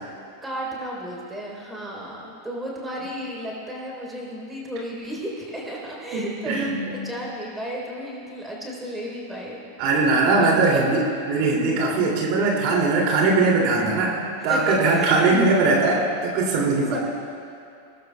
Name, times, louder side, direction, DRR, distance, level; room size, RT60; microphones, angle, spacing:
voice 1, 0.4-11.1 14.4-15.4 16.9-17.0, equal, 10° right, -3 dB, 3.8 m, -34 dB
voice 2, 6.1-7.1 9.8-17.0, right 3 dB, 45° right, -2 dB, 2.7 m, -21 dB
25.5 x 19.0 x 2.3 m, 2.5 s
figure-of-eight pair, 90°, 0 cm